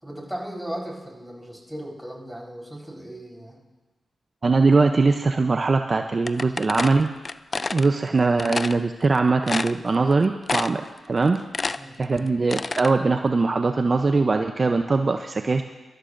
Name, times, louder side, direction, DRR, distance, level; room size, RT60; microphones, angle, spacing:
voice 1, 0.0-3.6 11.8-12.0, right 1 dB, 10° right, -1 dB, 4.1 m, -36 dB
voice 2, 4.4-7.1 7.7-11.4 12.0-15.6, right 3 dB, 50° right, 6 dB, 0.6 m, -21 dB
sound 1, 6.3-7.9 8.4-8.8 9.1-9.2 9.5-10.1 10.5-10.9 11.2-12.9, left 3 dB, 45° left, 0.4 m, -28 dB
24.0 x 12.5 x 2.6 m, 1.2 s
supercardioid pair, 45°, 0 cm